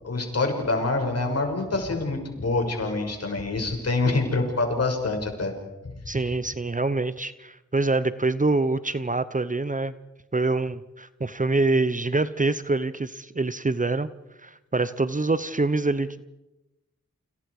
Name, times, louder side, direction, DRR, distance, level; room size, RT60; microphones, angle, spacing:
voice 1, 0.0-5.5 6.1-6.3, left 3 dB, 60° left, 3 dB, 6.3 m, -26 dB
voice 2, 6.1-9.9 10.3-14.1 14.4-16.2, right 3 dB, 25° right, 14 dB, 1.0 m, -25 dB
29.5 x 26.0 x 5.0 m, 0.98 s
cardioid pair, 55°, 29 cm